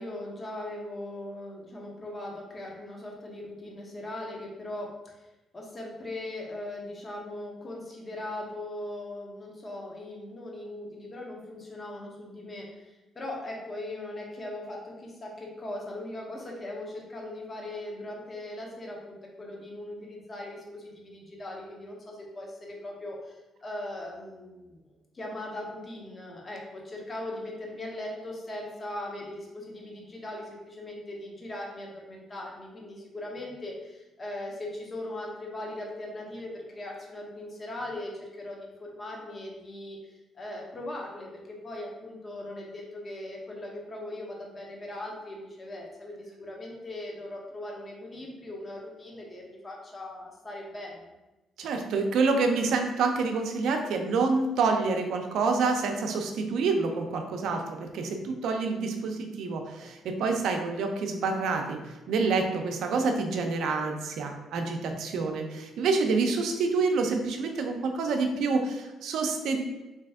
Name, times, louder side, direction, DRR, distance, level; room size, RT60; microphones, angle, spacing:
voice 1, 0.0-5.3 5.5-24.8 25.1-51.1, left 1 dB, 35° left, -1 dB, 0.9 m, -39 dB
voice 2, 51.6-61.8 62.1-69.6, right 4 dB, 80° right, 4 dB, 0.5 m, -27 dB
3.3 x 2.9 x 3.5 m, 1.0 s
cardioid pair, 90°, 0 cm